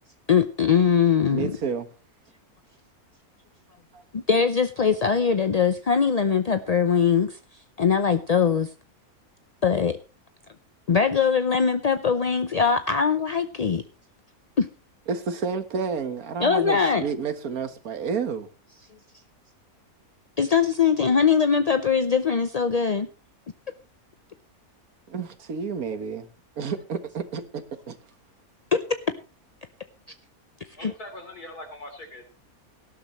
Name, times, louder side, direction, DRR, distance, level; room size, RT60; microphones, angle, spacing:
voice 1, 0.3-1.5 4.1-7.4 7.8-8.7 9.6-10.0 10.9-13.8 14.6-14.7 16.4-17.0 20.4-23.1 28.7-28.8 30.8-30.9, left 6 dB, 45° left, 0.5 m, -21 dB
voice 2, 1.3-1.9 3.9-4.0 15.1-18.5 25.1-26.3 26.6-28.0, right 5 dB, 70° right, 1.8 m, -30 dB
voice 3, 30.8-32.2, left 1 dB, 90° left, 4.1 m, -41 dB
18.5 x 12.5 x 3.1 m
omnidirectional pair, 1.6 m